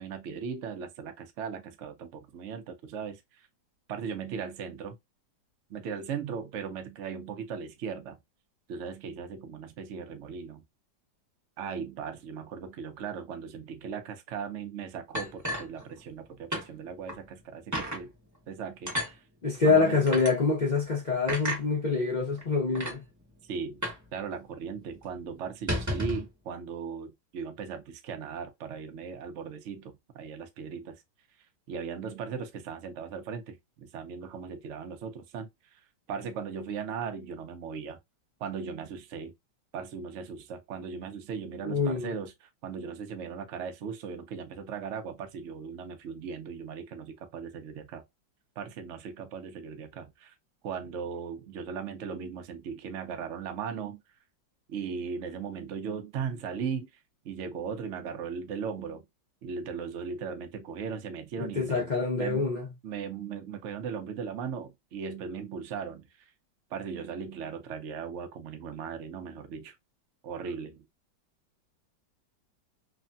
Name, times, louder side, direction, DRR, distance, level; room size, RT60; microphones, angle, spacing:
voice 1, 0.0-3.5 3.9-5.0 5.7-8.2 8.7-10.6 11.6-18.1 18.5-19.2 19.6-20.1 23.5-23.8 24.1-31.0 31.7-35.8 36.1-38.0 38.4-39.3 39.7-48.0 48.6-50.3 50.6-54.0 54.7-56.9 57.2-59.1 59.4-62.4 62.8-66.3 66.7-69.7 70.2-70.9, right 6 dB, 70° right, 0.7 m, -38 dB
sound 1, 15.1-16.2 16.5-16.7 17.1-17.2 17.7-18.0 18.9-19.1 20.1-20.3 21.3-21.6 22.4-22.5 22.7-23.0 23.8-24.1 24.3-24.4 24.8-25.0 25.5-26.3, equal, 15° right, 0.7 m, -32 dB
voice 2, 19.4-23.0 41.6-42.1 61.4-62.7, left 4 dB, 50° left, 0.5 m, -26 dB
3.1 x 2.2 x 2.5 m
omnidirectional pair, 2.0 m